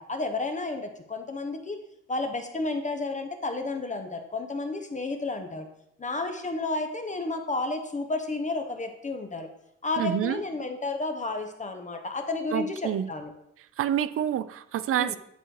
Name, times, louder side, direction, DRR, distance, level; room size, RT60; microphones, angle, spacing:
voice 1, 0.0-1.8 2.1-5.7 6.0-9.5 9.8-13.3 15.0-15.2, left 3 dB, 25° left, 6 dB, 0.7 m, -31 dB
voice 2, 10.0-10.4 12.5-13.1 13.8-15.2, right 10 dB, 50° right, 15 dB, 0.4 m, -27 dB
9.1 x 3.2 x 3.8 m, 0.79 s
cardioid pair, 90°, 30 cm